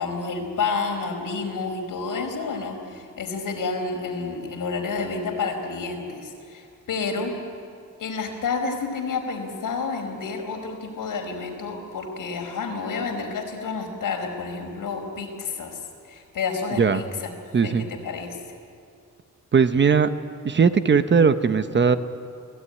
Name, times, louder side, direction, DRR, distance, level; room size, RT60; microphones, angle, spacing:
voice 1, 0.0-7.4 8.0-15.8 16.1-17.3 17.6-18.4, left 4 dB, 80° left, 2 dB, 4.9 m, -30 dB
voice 2, 17.5-17.9 19.5-20.1 20.4-22.0, right 6 dB, 35° right, 10 dB, 0.9 m, -18 dB
29.5 x 19.0 x 9.9 m, 2.4 s
wide cardioid pair, 175°, 32 cm